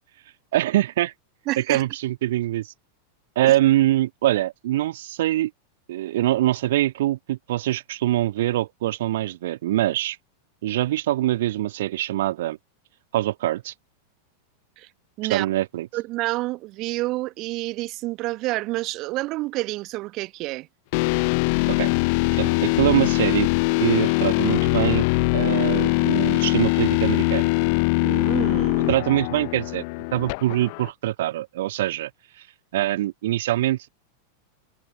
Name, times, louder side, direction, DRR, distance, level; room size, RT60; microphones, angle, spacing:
voice 1, 0.5-1.1 1.6-2.7 3.4-5.5 5.9-10.2 10.6-12.6 13.1-13.7 15.2-15.9 21.7-21.9 22.4-23.5 23.8-25.1 25.3-27.5 28.9-29.8 30.1-32.1 32.7-33.9, right 14 dB, 55° right, 1.8 m, -23 dB
voice 2, 1.5-1.9 3.4-3.5 14.8-14.9 15.2-15.5 15.9-20.7 28.0-28.9, right 20 dB, 40° right, 1.5 m, -29 dB
sound 1, 20.9-30.9, left 31 dB, 45° left, 0.6 m, -22 dB
figure-of-eight pair, 90°, 0 cm